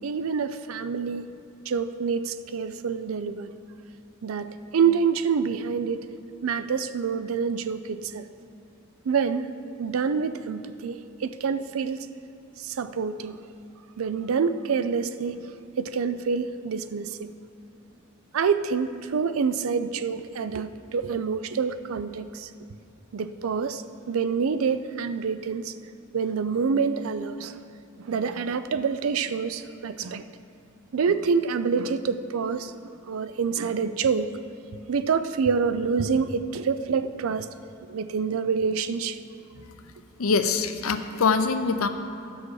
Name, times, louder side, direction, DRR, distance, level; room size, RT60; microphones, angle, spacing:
voice 1, 0.0-1.3 1.7-3.5 4.2-6.0 6.4-8.3 9.0-9.5 9.8-12.0 12.6-13.4 14.0-15.4 15.8-17.3 18.3-22.5 23.1-25.8 26.1-27.6 28.0-30.3 30.9-32.7 33.1-34.3 34.9-37.5 37.9-39.2, right 5 dB, 75° right, 12 dB, 0.4 m, -27 dB
voice 2, 40.2-41.9, left 4 dB, 90° left, 9 dB, 0.6 m, -23 dB
13.0 x 6.2 x 4.8 m, 2.6 s
head